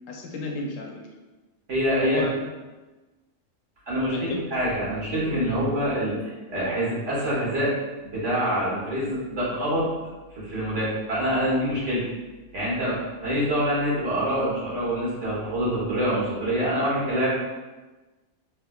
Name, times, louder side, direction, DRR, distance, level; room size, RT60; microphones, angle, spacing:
voice 1, 0.1-1.0 2.0-2.5 4.1-4.4 5.4-5.6, left 2 dB, 75° left, 1 dB, 1.0 m, -33 dB
voice 2, 1.7-2.2 3.9-7.7 8.0-9.9 10.3-12.0 12.5-17.4, equal, 65° right, -8 dB, 1.6 m, -25 dB
3.4 x 3.3 x 2.3 m, 1.2 s
omnidirectional pair, 1.4 m